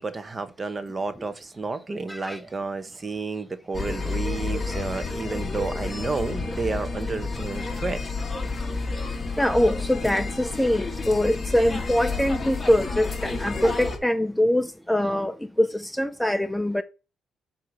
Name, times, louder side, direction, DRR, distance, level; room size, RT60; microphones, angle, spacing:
voice 1, 0.0-8.0, right 3 dB, 30° right, 0.8 m, -31 dB
voice 2, 2.1-2.4 9.1-16.8, left 1 dB, 5° left, 0.4 m, -23 dB
sound 1, 3.7-14.0, left 3 dB, 25° left, 1.5 m, -30 dB
7.7 x 2.7 x 5.9 m
cardioid pair, 90°, 0 cm